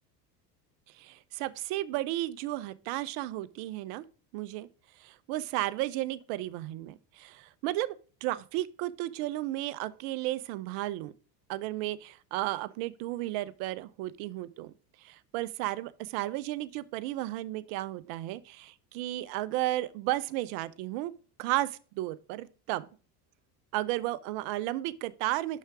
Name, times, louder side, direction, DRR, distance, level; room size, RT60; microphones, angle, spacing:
voice 1, 0.9-4.0 4.3-4.7 5.0-11.1 11.5-14.7 15.0-21.1 21.4-22.9 23.7-25.6, right 16 dB, 65° right, 0.7 m, -33 dB
6.3 x 5.7 x 4.9 m
supercardioid pair, 90°, 48 cm